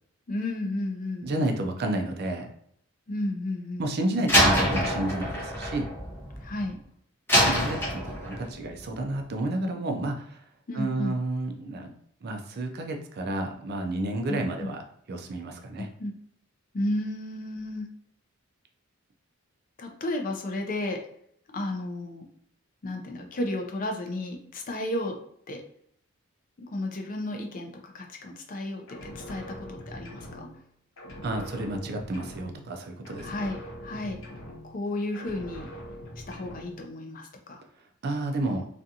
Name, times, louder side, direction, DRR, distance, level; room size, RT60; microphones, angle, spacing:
voice 1, 0.3-1.6 3.1-4.1 6.4-6.8 10.7-11.1 14.3-14.7 15.8-16.1 16.7-17.9 19.8-21.0 21.5-22.2 22.8-25.2 25.5-25.6 26.7-30.5 33.2-34.2 34.6-35.7 36.3-37.6, left 1 dB, 40° left, 3 dB, 0.4 m, -33 dB
voice 2, 1.2-2.5 3.8-5.9 7.4-10.4 10.7-11.9 12.2-15.9 31.2-33.3 38.0-38.7, right 1 dB, 50° right, 4 dB, 0.4 m, -31 dB
Slam, 4.3-6.7 7.3-8.5, equal, 10° left, 0.7 m, -25 dB
sound 1, 28.9-30.7 31.0-32.8 33.0-34.9 35.1-36.8, equal, 70° left, 0.8 m, -43 dB
2.5 x 2.4 x 2.7 m, 0.69 s
head